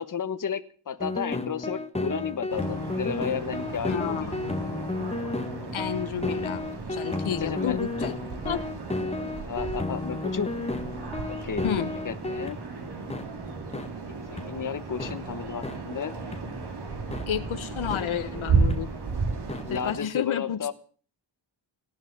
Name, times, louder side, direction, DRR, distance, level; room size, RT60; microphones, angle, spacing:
voice 1, 0.0-4.3 7.4-7.8 9.0-10.5 11.3-11.7 12.0-12.6 14.5-16.2 17.9-18.1 19.6-20.7, left 7 dB, 40° left, 10 dB, 1.3 m, -33 dB
sound 1, 1.0-12.6 13.1-13.2 13.7-13.9 14.4-14.5 15.0-15.1 15.6-15.8 16.3-16.4 17.1-17.2 17.9-18.0 18.7-18.8 19.5-19.6, left 2 dB, 15° left, 1.2 m, -32 dB
sound 2, 2.5-20.0, right 4 dB, 55° right, 3.1 m, -33 dB
voice 2, 3.9-4.5 5.7-6.6 6.9-8.1 8.4-8.6 11.6-11.9 17.3-18.9 19.7-20.7, left 9 dB, 75° left, 10 dB, 1.2 m, -31 dB
18.5 x 10.5 x 7.4 m, 0.42 s
wide cardioid pair, 130°, 48 cm